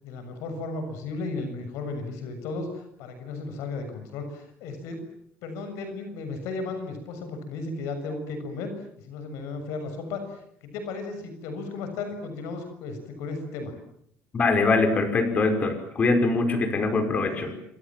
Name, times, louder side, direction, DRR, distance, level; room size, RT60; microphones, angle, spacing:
voice 1, 0.0-5.0 5.4-13.7 17.2-17.5, left 3 dB, 90° left, 8 dB, 6.8 m, -35 dB
voice 2, 14.3-17.5, left 3 dB, 30° left, 7 dB, 5.2 m, -23 dB
28.0 x 26.5 x 7.5 m, 0.72 s
cardioid pair, 145°, 5 cm